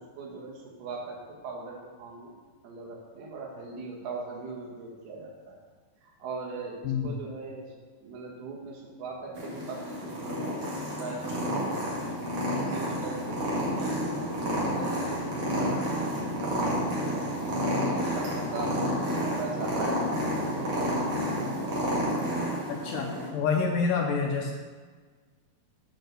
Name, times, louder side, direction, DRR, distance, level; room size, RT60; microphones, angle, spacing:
voice 1, 0.0-2.4 2.6-5.7 6.0-7.8 8.0-12.2 12.7-20.5 20.8-21.0 23.7-23.8, right 3 dB, 80° right, -1 dB, 3.3 m, -40 dB
voice 2, 6.8-7.2 22.7-24.5, left 5 dB, 80° left, 1 dB, 2.1 m, -28 dB
Purr, 9.4-23.3, equal, 50° right, 2.6 m, -30 dB
9.1 x 4.5 x 6.5 m, 1.5 s
omnidirectional pair, 4.4 m